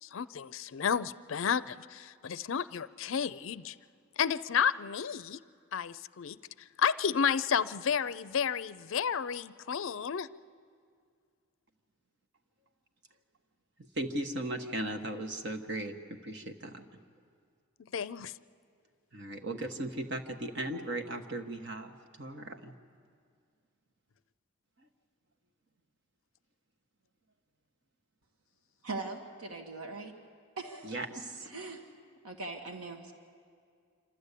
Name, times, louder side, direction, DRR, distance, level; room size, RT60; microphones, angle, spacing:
voice 1, 0.0-3.8 4.2-5.4 5.7-10.3 17.9-18.3, left 7 dB, 65° left, 16 dB, 0.5 m, -31 dB
voice 2, 13.9-17.0 19.1-22.7 30.8-31.5, right 1 dB, 55° right, 5 dB, 1.3 m, -37 dB
voice 3, 28.8-30.1 30.6-31.0 31.5-31.8 32.2-33.1, right 3 dB, 90° right, 3 dB, 1.7 m, -40 dB
26.5 x 13.5 x 8.3 m, 2.2 s
head